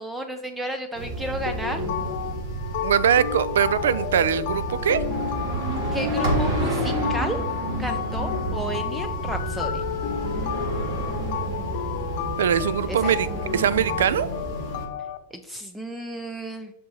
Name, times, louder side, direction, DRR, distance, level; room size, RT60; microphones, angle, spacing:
voice 1, 0.0-1.8 5.9-7.4 7.8-9.8 12.9-13.2 15.3-16.7, right 1 dB, 5° right, 6 dB, 0.5 m, -32 dB
sound 1, 0.9-14.9, right 2 dB, 55° right, 1.7 m, -30 dB
sound 2, 1.5-15.2, left 10 dB, 60° left, 0.4 m, -32 dB
voice 2, 2.8-5.0 12.4-13.3 13.5-14.3, right 8 dB, 85° right, 16 dB, 0.3 m, -22 dB
6.0 x 5.9 x 2.8 m, 0.92 s
hypercardioid pair, 125°, 0 cm